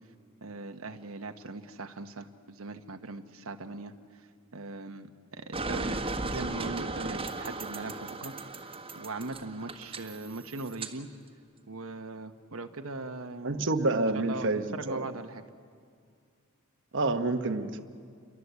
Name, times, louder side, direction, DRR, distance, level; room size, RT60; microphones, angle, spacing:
voice 1, 0.4-3.9 4.2-4.3 4.5-8.3 8.6-11.1 11.7-15.4, right 3 dB, 90° right, 5 dB, 1.2 m, -40 dB
sound 1, 5.5-10.9, right 2 dB, 25° right, 1.6 m, -36 dB
voice 2, 13.4-15.1 16.9-17.8, right 2 dB, 60° right, 6 dB, 1.2 m, -28 dB
29.5 x 23.5 x 8.2 m, 2.2 s
head